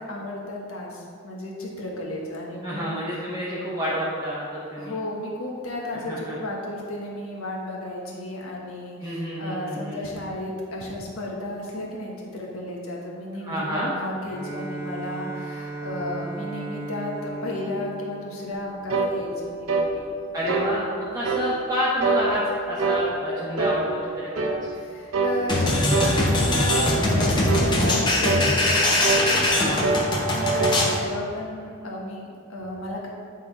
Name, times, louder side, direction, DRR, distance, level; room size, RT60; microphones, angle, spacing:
voice 1, 0.1-3.0 4.8-20.1 24.7-29.4 30.0-33.1, left 1 dB, 75° left, -2 dB, 1.4 m, -33 dB
voice 2, 2.6-4.9 6.1-6.4 9.0-10.1 13.4-13.9 20.3-24.7 29.5-29.9, equal, 15° right, -8 dB, 0.9 m, -29 dB
Bowed string instrument, 14.2-19.0, right 2 dB, 40° left, 1.7 m, -36 dB
sound 1, 18.9-19.2 19.7-19.9 20.5-20.7 21.2-21.5 22.0-22.3 22.8-23.0 23.6-23.8 24.4-24.6 25.1-25.4 25.9-26.2 26.7-26.9 27.5-27.7 28.2-28.5 29.0-29.3 29.8-30.1 30.4-30.8, right 4 dB, 75° right, 0.8 m, -24 dB
sound 2, 25.5-31.0, left 1 dB, 20° left, 0.8 m, -22 dB
9.5 x 3.7 x 4.7 m, 2.3 s
head